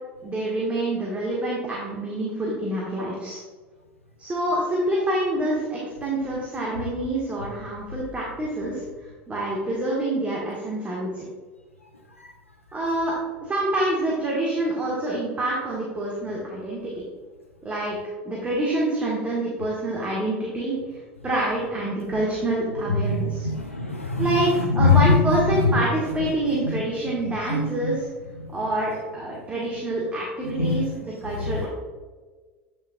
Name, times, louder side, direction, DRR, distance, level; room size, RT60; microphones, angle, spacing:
voice 1, 0.2-3.4 4.2-8.8 9.3-11.2 12.7-17.0 17.6-18.0 18.2-23.5 24.2-28.1 28.5-31.7, right 1 dB, 20° right, -5 dB, 1.7 m, -27 dB
voice 2, 22.9-25.7 26.5-26.8 27.5-27.9 30.6-30.9 31.4-31.7, left 3 dB, 90° left, 2 dB, 0.5 m, -23 dB
8.5 x 6.4 x 2.4 m, 1.4 s
figure-of-eight pair, 75°, 7 cm